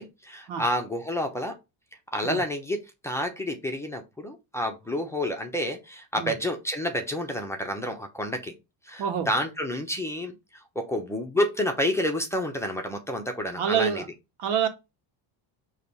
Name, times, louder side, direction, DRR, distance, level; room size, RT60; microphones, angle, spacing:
voice 1, 0.0-1.6 2.1-8.6 8.9-10.3 10.7-14.0, left 1 dB, 5° left, 0.9 m, -29 dB
voice 2, 13.6-14.1 14.4-14.7, right 8 dB, 80° right, 1.8 m, -26 dB
6.5 x 3.2 x 5.5 m
cardioid pair, 145°, 49 cm